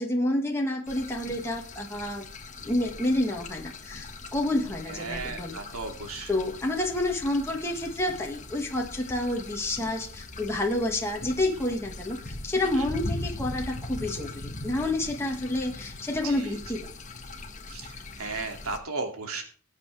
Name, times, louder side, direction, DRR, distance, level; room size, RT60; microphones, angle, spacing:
voice 1, 0.0-2.3 2.7-5.6 6.3-16.9, left 1 dB, 10° left, -1 dB, 2.0 m, -29 dB
sound 1, 0.9-18.8, left 2 dB, 35° left, 1.5 m, -40 dB
voice 2, 4.9-6.3 12.8-12.9 16.2-16.6 17.7-19.4, right 3 dB, 90° right, 4 dB, 2.6 m, -35 dB
19.5 x 8.2 x 3.4 m, 0.43 s
head